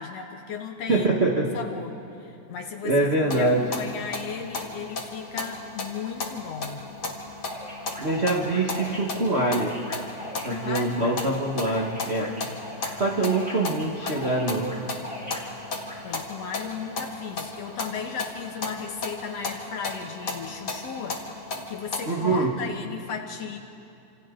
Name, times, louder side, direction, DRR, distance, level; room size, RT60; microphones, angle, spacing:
voice 1, 0.0-1.2 1.5-6.8 10.5-11.1 16.0-23.6, left 6 dB, 65° left, 4 dB, 1.8 m, -35 dB
voice 2, 0.9-1.6 2.8-3.7 8.0-9.7 10.4-12.3 13.0-14.7 22.1-22.5, right 2 dB, 50° right, -2 dB, 0.7 m, -24 dB
sound 1, 3.3-22.0, left 3 dB, 35° left, 2.1 m, -36 dB
sound 2, 7.4-15.9, equal, 5° right, 2.6 m, -41 dB
29.0 x 27.5 x 3.8 m, 2.7 s
omnidirectional pair, 3.7 m